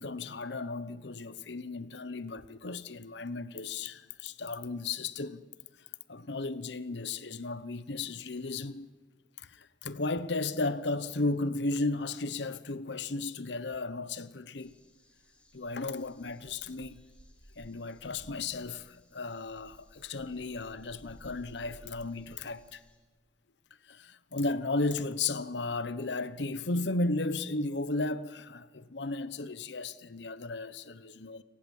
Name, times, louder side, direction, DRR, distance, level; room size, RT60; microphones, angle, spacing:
voice 1, 0.0-5.4 6.1-8.9 9.4-14.7 15.5-17.0 17.6-22.8 23.8-31.4, left 3 dB, 75° left, 1.0 m, -34 dB
sound 1, 14.6-23.0, equal, 5° left, 3.1 m, -58 dB
29.5 x 18.5 x 8.5 m
head